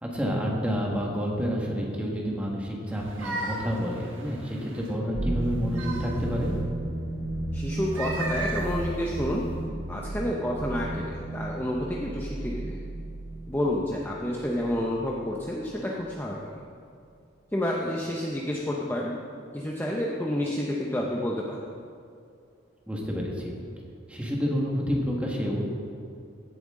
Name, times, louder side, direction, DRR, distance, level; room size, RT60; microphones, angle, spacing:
voice 1, 0.0-6.5 22.9-23.5 24.1-25.7, equal, 5° right, -2 dB, 1.6 m, -29 dB
sound 1, 2.9-5.0 5.4-6.6 7.8-9.6, right 2 dB, 80° right, 1.3 m, -37 dB
sound 2, 5.1-15.5, right 1 dB, 55° right, 0.8 m, -34 dB
voice 2, 7.5-9.4 9.9-12.8 13.5-16.5 17.5-19.1 19.5-21.7, left 1 dB, 10° left, -3 dB, 0.7 m, -29 dB
16.0 x 7.8 x 3.7 m, 2.4 s
head